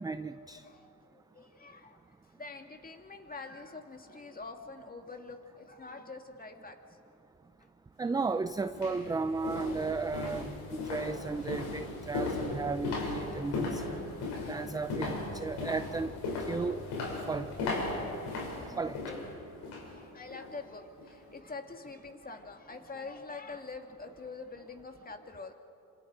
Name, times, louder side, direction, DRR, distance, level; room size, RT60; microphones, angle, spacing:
voice 1, 0.0-0.6 8.0-13.9 14.5-16.1 16.5-16.8 17.3-17.5 18.8-19.0, right 4 dB, 10° right, 12 dB, 0.4 m, -34 dB
voice 2, 0.6-2.0 2.3-6.8 18.3-19.2 19.8-25.5, left 3 dB, 20° left, 4 dB, 2.4 m, -45 dB
sound 1, 8.0-8.1 8.7-19.9 20.3-20.5 21.0-21.1, left 3 dB, 80° left, 6.6 m, -37 dB
27.5 x 26.5 x 5.0 m, 2.7 s
cardioid pair, 100°, 40 cm